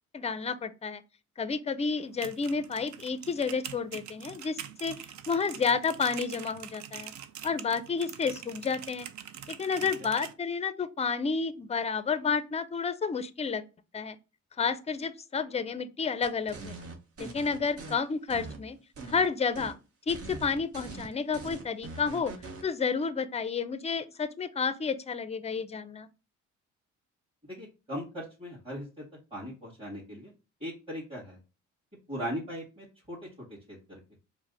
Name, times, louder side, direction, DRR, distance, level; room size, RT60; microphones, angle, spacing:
voice 1, 0.1-1.0 1.4-5.0 5.3-7.1 7.4-9.1 9.5-13.6 13.9-14.2 14.6-16.7 17.2-18.8 19.1-19.8 20.1-22.3 22.6-26.1, left 5 dB, 20° left, 0.4 m, -30 dB
sound 1, 2.0-10.3, right 9 dB, 70° right, 0.5 m, -44 dB
sound 2, 16.2-17.9 18.3-19.3 19.5-19.8 20.1-22.6, right 3 dB, 50° right, 1.0 m, -42 dB
voice 2, 27.5-28.9 29.3-30.3 30.6-31.4 32.1-33.2 33.7-34.0, equal, 20° right, 2.1 m, -38 dB
4.8 x 2.1 x 4.0 m
cardioid pair, 90°, 30 cm